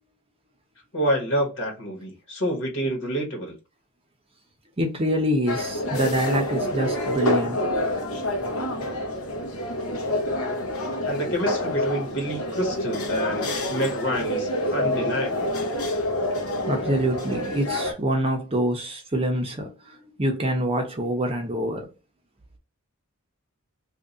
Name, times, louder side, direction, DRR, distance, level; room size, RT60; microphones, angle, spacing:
voice 1, 0.9-3.6 11.0-15.5, equal, 65° left, 1.5 m, -28 dB
voice 2, 4.8-7.7 13.7-13.9 16.7-21.9, right 1 dB, 25° right, 0.7 m, -26 dB
sound 1, 5.5-17.9, left 1 dB, 85° left, 1.1 m, -27 dB
2.8 x 2.6 x 3.7 m
head